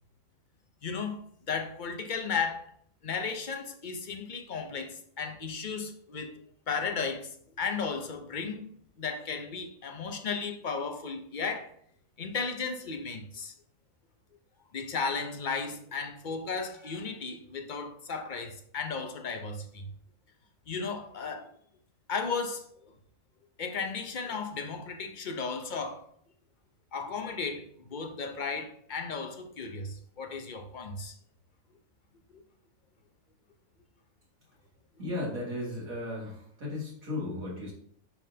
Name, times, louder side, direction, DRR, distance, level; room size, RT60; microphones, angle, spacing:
voice 1, 0.8-2.7 3.0-6.4 6.7-7.3 7.6-8.7 9.0-11.7 12.2-13.5 14.7-19.9 20.7-21.5 22.1-22.7 23.6-26.0 26.9-31.1 32.3-32.4, left 5 dB, 45° left, 0.7 m, -35 dB
voice 2, 35.0-37.7, left 2 dB, 85° right, 2.7 m, -35 dB
10.0 x 3.8 x 2.8 m
omnidirectional pair, 1.4 m